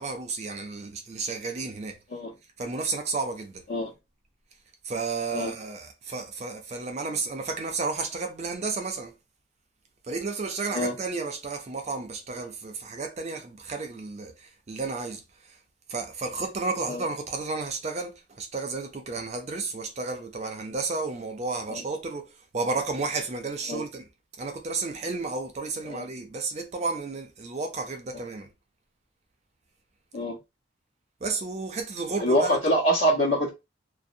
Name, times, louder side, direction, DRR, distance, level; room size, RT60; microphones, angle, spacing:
voice 1, 0.0-2.0 2.6-3.6 4.8-9.1 10.1-15.6 15.9-24.1 24.4-28.5 31.2-32.6, right 4 dB, 35° right, 0.4 m, -32 dB
voice 2, 32.2-33.5, equal, 75° left, 1.1 m, -25 dB
2.5 x 2.0 x 2.6 m
head